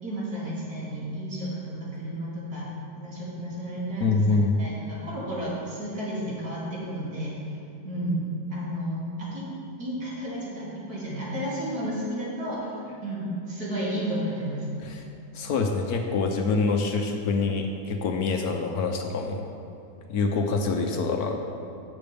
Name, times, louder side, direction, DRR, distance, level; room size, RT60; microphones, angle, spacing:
voice 1, 0.0-2.7 2.9-7.3 7.8-8.2 8.5-9.4 9.8-12.7 13.0-14.6, right 1 dB, 55° right, -7 dB, 3.3 m, -32 dB
voice 2, 4.0-4.6 14.8-15.0 15.3-19.4 20.1-21.4, left 4 dB, 65° left, 3 dB, 1.2 m, -25 dB
13.0 x 8.7 x 3.5 m, 2.7 s
omnidirectional pair, 1.9 m